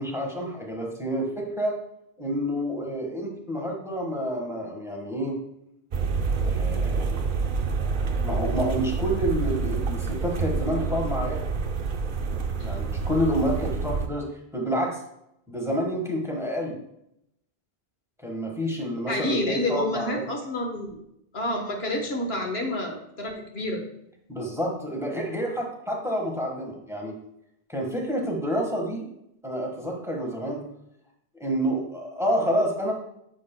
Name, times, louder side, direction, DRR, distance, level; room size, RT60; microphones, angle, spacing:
voice 1, 0.0-1.8 2.2-5.4 6.4-7.2 8.2-11.4 12.6-15.0 15.5-16.8 18.2-20.2 24.3-27.2 27.7-29.1 29.4-30.6 31.3-32.9, equal, 5° right, 0 dB, 1.3 m, -28 dB
sound 1, 5.9-14.1, right 5 dB, 55° right, 0.9 m, -27 dB
voice 2, 19.1-21.0 21.3-23.8, left 1 dB, 80° left, 2 dB, 1.5 m, -28 dB
9.6 x 7.0 x 2.2 m, 0.78 s
omnidirectional pair, 1.0 m